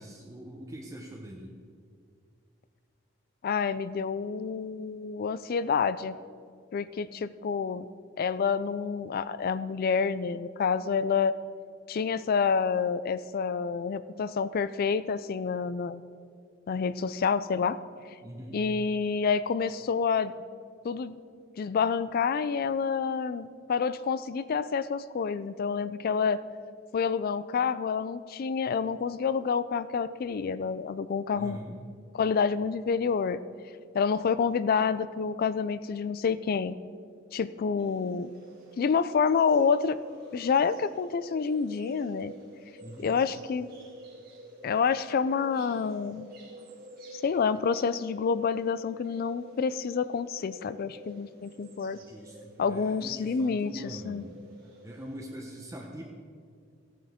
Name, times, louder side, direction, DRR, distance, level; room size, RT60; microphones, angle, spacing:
voice 1, 0.0-1.5 18.2-18.6 31.3-31.8 42.8-43.2 52.0-54.3 54.8-56.1, equal, 15° right, -1 dB, 0.8 m, -43 dB
voice 2, 3.4-6.2 6.7-7.9 8.2-11.4 11.9-16.0 16.7-17.8 18.5-20.3 20.8-21.2 21.6-26.4 26.9-31.6 32.1-33.4 33.9-36.7 37.3-38.3 38.8-40.0 40.3-42.3 43.0-43.7 44.6-46.3 47.1-52.0 52.6-54.3, left 6 dB, 50° left, 15 dB, 0.3 m, -28 dB
sound 1, 37.8-55.2, right 1 dB, 50° right, 1.9 m, -50 dB
15.0 x 9.3 x 3.6 m, 2.2 s
head